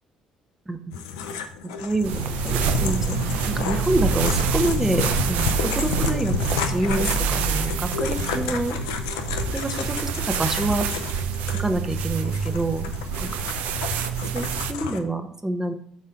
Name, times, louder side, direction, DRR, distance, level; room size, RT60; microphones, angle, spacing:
sound 1, 0.9-15.0, left 6 dB, 70° left, 0.6 m, -32 dB
voice 1, 1.6-3.2 3.4-8.8 9.5-10.9 11.5-12.9 13.2-13.3 14.3-15.7, right 1 dB, 15° right, 8 dB, 0.9 m, -27 dB
sound 2, 2.0-14.7, right 7 dB, 60° right, 0.5 m, -27 dB
sound 3, 2.1-8.6, right 1 dB, 90° right, 2.1 m, -30 dB
5.6 x 4.2 x 5.0 m, 0.62 s
figure-of-eight pair, 50°, 3 cm